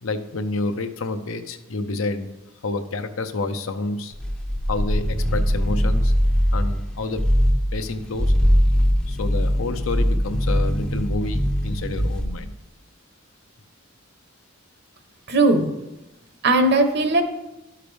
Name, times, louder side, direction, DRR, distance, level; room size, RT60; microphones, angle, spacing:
voice 1, 0.0-2.3 2.6-4.1 4.7-6.1 6.5-7.2 7.7-8.3 9.1-12.5, left 3 dB, 80° left, 8 dB, 0.7 m, -29 dB
sound 1, 4.1-6.8 7.1-7.7 8.1-12.3, equal, 5° left, 0.5 m, -21 dB
voice 2, 15.3-15.7 16.4-17.2, right 2 dB, 55° right, 7 dB, 1.0 m, -18 dB
11.5 x 5.7 x 3.4 m, 0.96 s
head